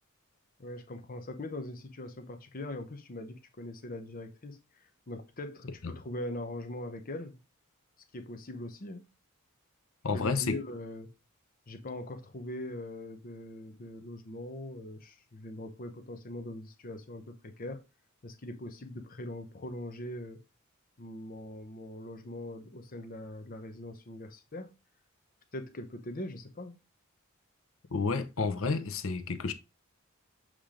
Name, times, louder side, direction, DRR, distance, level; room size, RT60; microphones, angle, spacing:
voice 1, 0.6-7.4 8.1-9.0 10.1-11.1 11.7-17.8 18.2-20.4 21.0-24.7 25.5-26.7, left 1 dB, 45° left, 0.8 m, -41 dB
voice 2, 10.0-10.6 27.9-29.5, left 4 dB, 70° left, 0.9 m, -30 dB
7.4 x 3.3 x 5.0 m
head